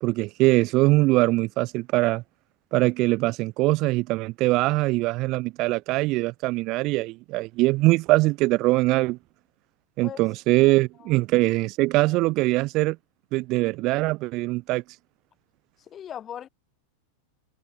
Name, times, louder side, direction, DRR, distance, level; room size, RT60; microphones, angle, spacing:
voice 1, 0.0-2.2 2.7-9.2 10.0-13.0 13.3-14.8, right 21 dB, 40° right, 1.4 m, -22 dB
voice 2, 15.8-16.5, left 9 dB, 25° left, 7.5 m, -38 dB
figure-of-eight pair, 90°, 0 cm